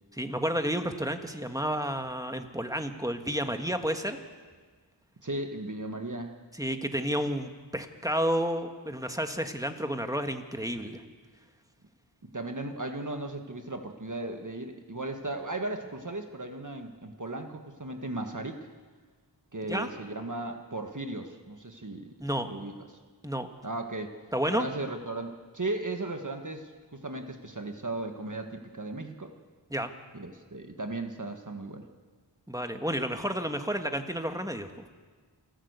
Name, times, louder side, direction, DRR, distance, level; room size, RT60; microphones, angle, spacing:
voice 1, 0.2-4.2 6.5-11.0 19.7-19.9 22.2-22.5 23.2-23.5 24.3-24.6 29.7-29.9 32.5-34.7, equal, 10° right, 6 dB, 1.6 m, -31 dB
voice 2, 5.2-6.3 12.3-18.7 19.5-22.1 22.4-22.7 23.6-24.1 24.5-29.3 30.1-31.9, right 2 dB, 45° right, 5 dB, 1.6 m, -36 dB
28.5 x 11.5 x 8.2 m, 1.5 s
wide cardioid pair, 50°, 44 cm